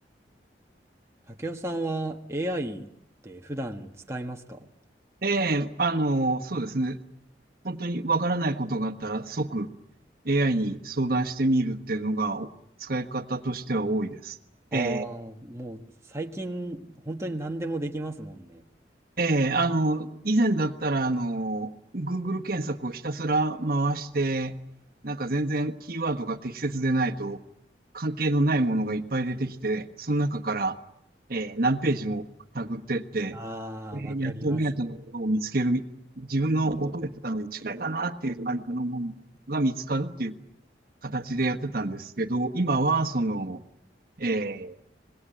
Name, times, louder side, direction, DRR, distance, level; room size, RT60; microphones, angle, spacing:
voice 1, 1.3-2.9 3.2-4.7 14.7-15.8 16.1-18.6 33.3-34.6, right 1 dB, 15° right, 2 dB, 1.5 m, -34 dB
voice 2, 5.2-7.0 7.6-9.7 10.2-12.5 12.8-14.4 14.7-15.0 19.2-24.6 25.0-27.4 27.9-30.8 31.3-32.3 32.5-33.4 33.9-35.8 36.2-39.1 39.5-40.3 41.0-43.6 44.2-44.7, right 2 dB, 55° right, 6 dB, 1.4 m, -27 dB
26.0 x 21.0 x 9.0 m, 0.76 s
head